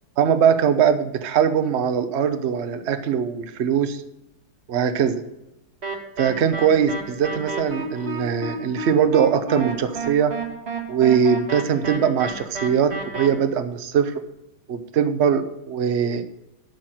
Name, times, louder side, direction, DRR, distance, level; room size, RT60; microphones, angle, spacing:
voice 1, 0.2-4.0 4.7-5.2 6.2-10.3 10.9-14.2 14.7-16.2, right 8 dB, 60° right, 9 dB, 0.6 m, -21 dB
sound 1, 5.8-13.3, right 2 dB, 30° right, 1.9 m, -31 dB
12.5 x 4.5 x 7.8 m, 0.89 s
omnidirectional pair, 2.3 m